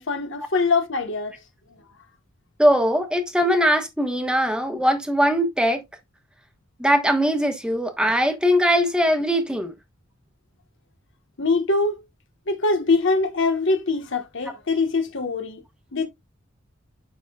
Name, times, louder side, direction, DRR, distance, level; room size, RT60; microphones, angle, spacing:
voice 1, 0.0-1.4 11.4-12.0 12.5-15.6 15.9-16.1, left 3 dB, 65° left, 1.4 m, -23 dB
voice 2, 2.6-5.8 6.8-9.7, equal, 5° right, 1.3 m, -20 dB
9.9 x 4.0 x 2.4 m
head